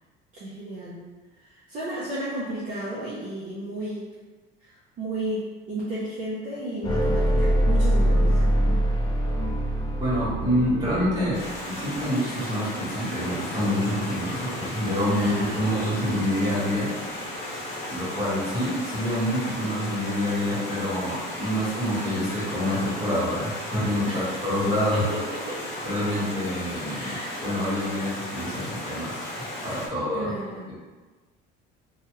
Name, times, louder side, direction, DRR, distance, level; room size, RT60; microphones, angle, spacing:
voice 1, 0.3-1.0 1.4-4.1 4.6-8.4 15.1-15.7 24.1-24.6 24.9-25.7 26.9-27.4 30.1-30.7, right 1 dB, 40° right, -8 dB, 0.7 m, -33 dB
sound 1, 6.8-11.7, equal, 25° left, 0.4 m, -23 dB
voice 2, 10.0-16.9 17.9-25.0 25.8-29.2 29.6-30.3, equal, 20° right, -10 dB, 1.3 m, -27 dB
Stream, 11.3-29.9, left 1 dB, 55° left, 0.8 m, -35 dB
2.9 x 2.3 x 3.0 m, 1.3 s
cardioid pair, 155°, 20 cm